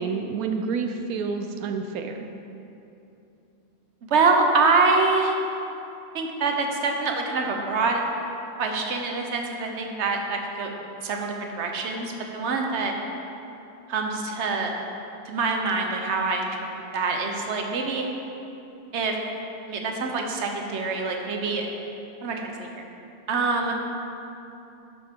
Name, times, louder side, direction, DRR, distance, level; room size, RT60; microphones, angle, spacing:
voice 1, 0.0-2.3, right 5 dB, 85° right, 5 dB, 1.1 m, -29 dB
voice 2, 4.1-5.3 6.1-8.0 8.6-10.7 11.0-12.9 13.9-14.7 15.3-16.6 16.9-18.0 18.9-19.2 19.7-21.7 22.2-22.7 23.3-23.7, right 4 dB, 55° right, 2 dB, 1.2 m, -25 dB
11.5 x 9.5 x 3.7 m, 2.9 s
omnidirectional pair, 1.5 m